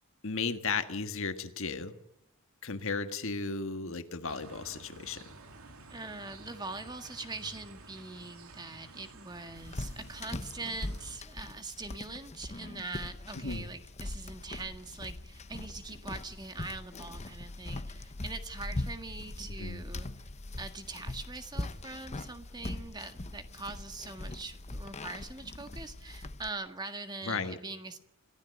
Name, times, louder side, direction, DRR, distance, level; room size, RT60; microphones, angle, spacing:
voice 1, 0.2-1.9 2.6-5.2 13.3-13.7 19.6-19.8 27.2-27.6, left 4 dB, 65° left, 8 dB, 1.7 m, -35 dB
sound 1, 4.3-11.2, right 3 dB, 75° right, 2.7 m, -52 dB
voice 2, 5.9-20.1 20.6-28.0, right 3 dB, 20° right, 7 dB, 1.7 m, -42 dB
sound 2, 9.5-26.5, left 2 dB, 30° left, 0.9 m, -41 dB
27.0 x 15.5 x 8.1 m, 0.82 s
head